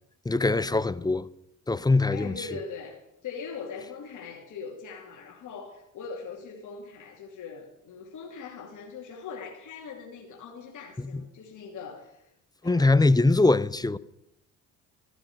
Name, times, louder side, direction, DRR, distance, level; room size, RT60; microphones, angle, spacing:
voice 1, 0.3-1.3 1.7-2.3 12.6-14.0, left 2 dB, 10° left, 0.6 m, -22 dB
voice 2, 2.1-12.3 12.6-13.1, left 5 dB, 60° left, 3.0 m, -41 dB
14.5 x 12.5 x 6.3 m
supercardioid pair, 75°, 34 cm